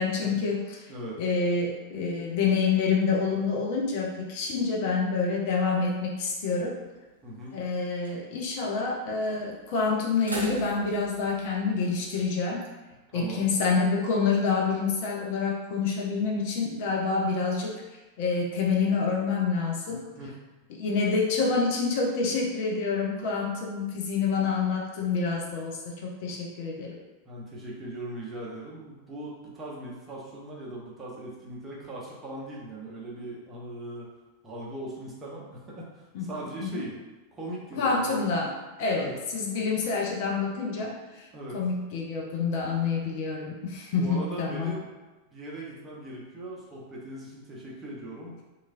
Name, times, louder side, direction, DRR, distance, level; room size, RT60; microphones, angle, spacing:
voice 1, 0.0-0.9 1.2-6.8 7.5-12.6 13.1-17.8 18.2-20.1 20.8-26.9 36.1-36.3 36.6-36.8 37.8-38.5 38.8-41.3 41.5-44.8, left 4 dB, 50° left, -2 dB, 0.5 m, -27 dB
voice 2, 0.9-1.2 7.2-7.6 13.1-13.5 19.9-20.4 26.3-26.4 27.2-34.1 34.4-37.0 37.3-38.2 38.9-39.2 41.3-41.6 44.0-44.9 45.3-48.4, right 1 dB, 20° right, -5 dB, 0.7 m, -39 dB
sound 1, 6.6-7.1 7.5-7.6 7.9-8.2 9.2-9.6 10.1-12.3, right 1 dB, 85° right, 0.5 m, -40 dB
2.9 x 2.4 x 2.5 m, 1.1 s
figure-of-eight pair, 90°, 0 cm